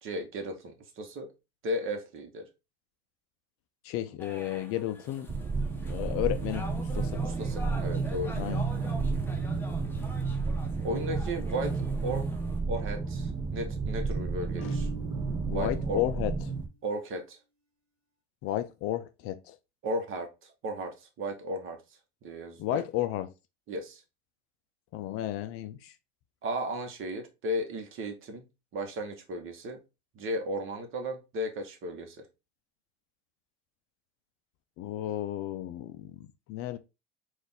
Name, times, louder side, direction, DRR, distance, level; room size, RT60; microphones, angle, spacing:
voice 1, 0.0-1.3 1.6-2.4 7.2-8.5 10.8-12.3 12.7-14.9 15.5-16.0 16.8-17.4 19.8-20.3 20.6-21.8 22.2-22.8 23.7-24.0 26.4-28.4 28.7-29.8 30.1-32.2, equal, 40° right, 1.1 m, -35 dB
voice 2, 3.8-5.3 5.9-7.2 8.4-8.7 14.6-14.8 15.5-16.5 18.4-19.6 22.6-23.3 24.9-25.9 34.8-36.8, left 13 dB, 45° left, 0.4 m, -33 dB
sound 1, 4.2-12.6, left 1 dB, 5° left, 0.8 m, -46 dB
sound 2, 5.3-16.7, right 4 dB, 15° right, 0.4 m, -31 dB
Marimba xylophone, 14.6-16.6, right 1 dB, 70° right, 1.0 m, -47 dB
4.0 x 2.6 x 3.5 m
hypercardioid pair, 85°, 31 cm